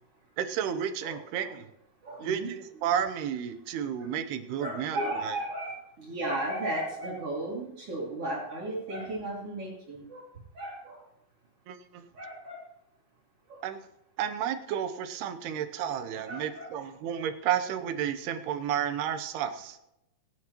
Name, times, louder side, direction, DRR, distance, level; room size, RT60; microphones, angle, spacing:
voice 1, 0.4-1.7 2.2-5.0 5.2-5.3 11.7-12.1 13.6-13.8 14.2-19.8, right 9 dB, 90° right, 10 dB, 3.0 m, -32 dB
voice 2, 1.0-1.5 2.0-2.5 4.6-10.2 10.5-11.0 12.1-12.6 13.5-13.6 16.1-16.7, right 1 dB, 40° right, -3 dB, 3.0 m, -35 dB
24.5 x 9.1 x 3.0 m, 0.87 s
omnidirectional pair, 4.5 m